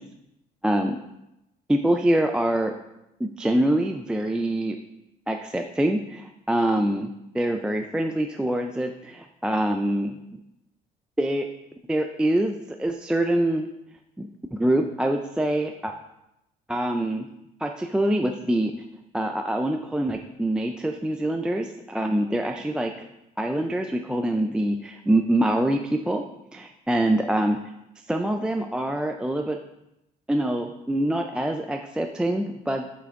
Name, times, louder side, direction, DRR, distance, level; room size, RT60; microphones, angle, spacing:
voice 1, 0.6-1.0 1.7-2.7 3.2-4.8 5.3-7.1 7.3-10.2 11.2-11.5 11.9-13.7 14.2-15.9 16.7-17.3 17.6-18.7 19.1-23.1 23.4-26.2 26.5-27.6 28.1-29.6 30.3-32.9, right 1 dB, 5° right, 4 dB, 0.3 m, -25 dB
6.0 x 5.8 x 3.6 m, 0.88 s
cardioid pair, 110°, 17 cm